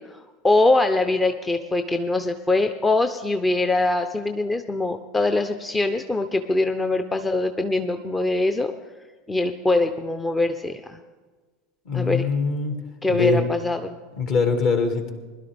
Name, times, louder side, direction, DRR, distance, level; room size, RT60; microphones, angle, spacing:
voice 1, 0.0-8.8 9.3-11.0 11.9-12.3 13.0-14.0, left 2 dB, 15° left, 8 dB, 0.6 m, -23 dB
voice 2, 11.9-12.8 13.1-13.4 14.2-15.1, left 4 dB, 50° left, 6 dB, 1.9 m, -22 dB
21.0 x 12.0 x 3.4 m, 1.4 s
figure-of-eight pair, 80°, 0 cm